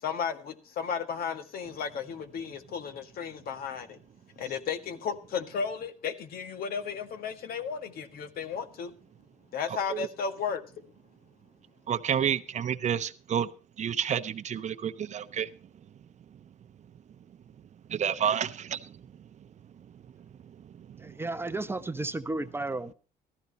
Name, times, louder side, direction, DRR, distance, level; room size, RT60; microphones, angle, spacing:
voice 1, 0.0-4.0 4.4-8.9 9.5-10.9, left 6 dB, 65° left, 1.9 m, -34 dB
voice 2, 11.9-13.5 13.8-15.5 17.9-18.9 20.8-21.2, right 8 dB, 45° right, 0.8 m, -30 dB
voice 3, 21.0-22.9, right 2 dB, 15° right, 0.8 m, -33 dB
14.5 x 13.5 x 4.2 m
cardioid pair, 110°, 17 cm